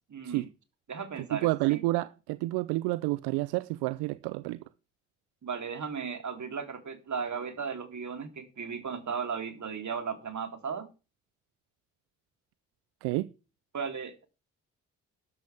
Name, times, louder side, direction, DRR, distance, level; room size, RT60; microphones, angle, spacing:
voice 1, 0.1-0.5 0.9-1.8 5.4-10.9 13.7-14.3, right 6 dB, 45° right, 3.3 m, -36 dB
voice 2, 1.3-4.6 13.0-13.3, right 20 dB, 75° right, 0.6 m, -29 dB
13.0 x 12.5 x 3.5 m
hypercardioid pair, 40°, 39 cm